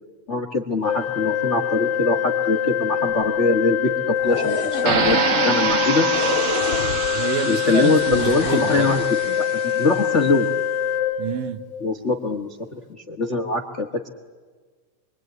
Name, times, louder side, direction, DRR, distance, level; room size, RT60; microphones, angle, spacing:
voice 1, 0.3-6.1 7.5-10.5 11.8-12.6 12.9-14.1, left 3 dB, 85° left, 0.6 m, -23 dB
Organ, 0.8-11.9, left 9 dB, 50° left, 2.2 m, -24 dB
sound 1, 4.2-5.1 6.1-7.2 8.1-9.1, left 3 dB, 35° left, 2.9 m, -29 dB
sound 2, 4.9-9.9, right 6 dB, 50° right, 1.9 m, -26 dB
voice 2, 7.1-9.0 11.2-11.6, right 10 dB, 75° right, 2.5 m, -28 dB
26.5 x 24.0 x 9.2 m
omnidirectional pair, 4.1 m